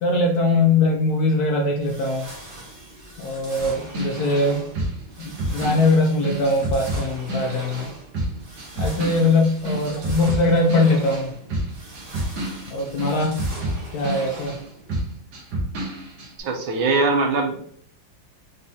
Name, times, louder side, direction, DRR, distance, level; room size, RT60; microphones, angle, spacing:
voice 1, 0.0-2.3 3.2-4.6 5.2-7.9 8.8-11.3 12.7-13.4 13.9-14.6, left 2 dB, 70° left, 1 dB, 0.9 m, -21 dB
sound 1, 1.8-14.9, right 2 dB, 35° right, 1.0 m, -41 dB
sound 2, 3.6-7.9 8.1-14.6 14.9-16.3, right 1 dB, 60° right, 1.5 m, -29 dB
voice 2, 16.4-17.7, right 3 dB, 85° right, 3 dB, 1.5 m, -22 dB
4.1 x 3.8 x 2.7 m, 0.62 s
omnidirectional pair, 2.2 m